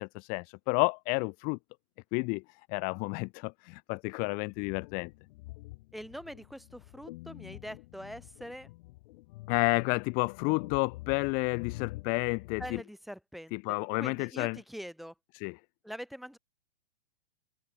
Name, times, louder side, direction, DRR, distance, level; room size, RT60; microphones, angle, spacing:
voice 1, 0.0-1.6 2.1-2.4 2.7-5.1 9.5-12.8 13.5-14.6 15.3-15.6, left 34 dB, 25° left, 0.6 m, -30 dB
sound 1, 4.5-12.8, left 21 dB, 45° left, 1.1 m, -46 dB
voice 2, 5.9-8.7 12.6-15.1 15.8-16.4, equal, ahead, 4.1 m, -44 dB
open air
hypercardioid pair, 130°, 33 cm